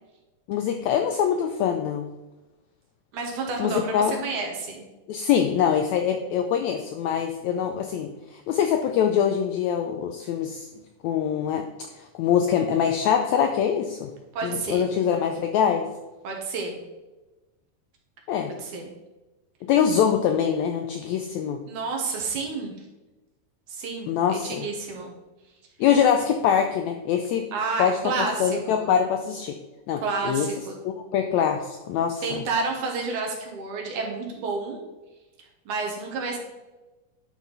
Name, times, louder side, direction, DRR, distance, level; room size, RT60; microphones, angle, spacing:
voice 1, 0.5-2.1 3.6-4.2 5.1-10.7 11.0-14.1 14.4-15.9 18.3-18.5 19.6-21.6 24.1-24.6 25.8-27.5 27.8-29.6 29.9-30.5 30.8-32.4, left 8 dB, 90° left, 5 dB, 1.6 m, -24 dB
voice 2, 3.1-4.8 14.3-14.9 16.2-16.8 18.5-18.9 21.7-22.7 23.7-25.1 27.5-28.9 30.0-30.7 32.2-34.8 35.7-36.4, right 4 dB, 70° right, 1 dB, 2.6 m, -30 dB
10.5 x 4.5 x 4.0 m, 1.1 s
omnidirectional pair, 3.8 m